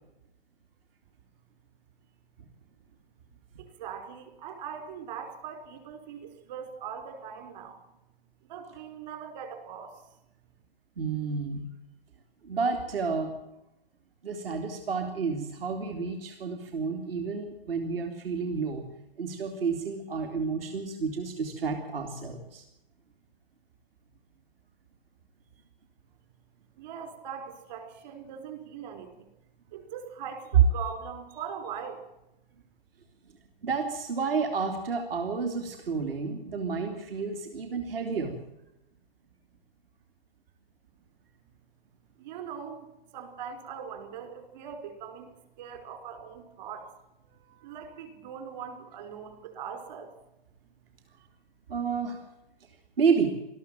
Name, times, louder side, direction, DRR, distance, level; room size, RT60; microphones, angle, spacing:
voice 1, 3.6-7.8 8.5-10.0 26.8-29.3 29.7-32.0 42.2-46.9 47.6-50.1, right 7 dB, 45° right, 6 dB, 4.9 m, -41 dB
voice 2, 11.0-11.7 12.4-13.4 14.2-18.9 19.2-22.6 33.6-38.4 47.5-47.7 51.7-52.2 53.0-53.4, right 5 dB, 70° right, 5 dB, 3.0 m, -30 dB
20.0 x 14.5 x 9.1 m, 0.89 s
hypercardioid pair, 155°, 30 cm